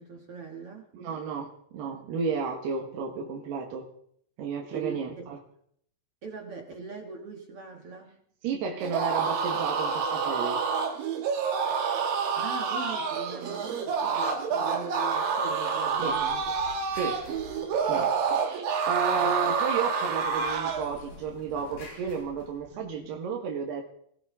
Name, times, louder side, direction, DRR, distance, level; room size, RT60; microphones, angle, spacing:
voice 1, 0.0-0.9 4.7-5.3 6.2-8.2 12.2-16.6 19.2-19.3 22.7-22.9, right 5 dB, 50° right, 2 dB, 1.9 m, -41 dB
voice 2, 0.9-3.9 4.4-5.4 8.4-10.6 16.0-16.2 16.9-17.3 17.8-23.9, right 6 dB, 85° right, 1 dB, 3.8 m, -32 dB
sound 1, 8.8-20.9, right 5 dB, 65° right, 3.2 m, -28 dB
sound 2, 15.8-18.3 20.0-23.1, left 2 dB, 80° left, 8.2 m, -49 dB
22.0 x 16.5 x 3.8 m, 0.66 s
omnidirectional pair, 4.6 m